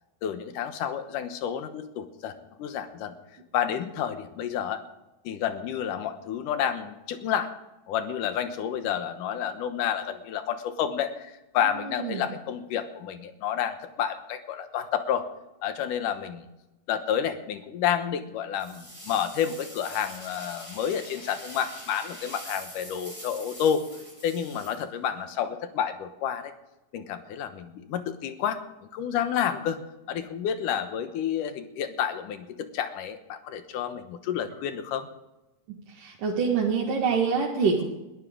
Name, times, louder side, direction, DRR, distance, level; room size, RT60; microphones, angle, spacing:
voice 1, 0.2-2.3 2.6-3.2 3.5-4.8 5.2-7.5 7.9-15.3 15.6-16.4 16.9-23.8 24.2-26.5 26.9-29.8 30.1-35.1, left 9 dB, 85° left, 9 dB, 2.7 m, -30 dB
voice 2, 11.8-12.3 35.9-37.8, right 5 dB, 85° right, -3 dB, 3.5 m, -26 dB
sound 1, 18.6-25.3, equal, 5° left, 7.2 m, -44 dB
21.5 x 13.0 x 3.8 m, 1.0 s
omnidirectional pair, 3.6 m